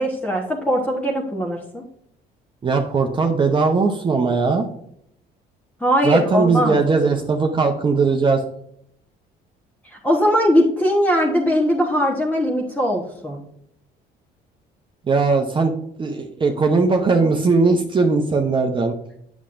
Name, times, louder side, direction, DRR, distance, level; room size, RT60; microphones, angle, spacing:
voice 1, 0.0-1.8 5.8-6.7 10.0-13.4, equal, 10° left, -2 dB, 1.2 m, -20 dB
voice 2, 2.6-4.7 6.0-8.4 15.1-15.7 16.0-18.9, right 4 dB, 30° right, 3 dB, 0.8 m, -19 dB
8.2 x 7.1 x 2.6 m, 0.70 s
cardioid pair, 110°, 17 cm